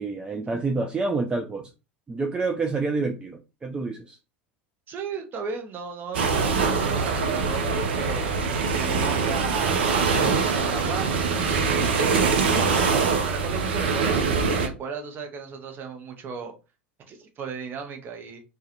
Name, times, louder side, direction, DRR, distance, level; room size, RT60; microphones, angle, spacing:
voice 1, 0.0-1.7 2.1-4.2, right 3 dB, 15° right, 0.3 m, -28 dB
voice 2, 4.9-8.3 8.6-11.2 11.5-14.2 14.6-16.5 17.1-18.4, right 5 dB, 35° right, 0.7 m, -35 dB
sound 1, 6.1-14.7, right 5 dB, 70° right, 0.5 m, -23 dB
2.3 x 2.2 x 2.9 m
figure-of-eight pair, 80°, 6 cm